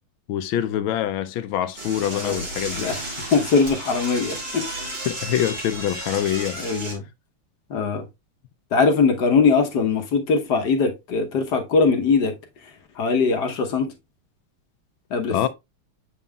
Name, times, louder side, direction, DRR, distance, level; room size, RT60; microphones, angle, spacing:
voice 1, 0.3-2.9 5.1-6.6 15.3-15.5, left 11 dB, 75° left, 1.3 m, -25 dB
Door / Toilet flush, 1.7-7.0, right 1 dB, 45° right, 3.0 m, -33 dB
voice 2, 3.3-4.6 6.6-7.1 7.7-8.1 8.7-12.3 13.0-13.9 15.1-15.5, left 4 dB, 55° left, 1.4 m, -21 dB
8.1 x 5.4 x 2.3 m
omnidirectional pair, 2.4 m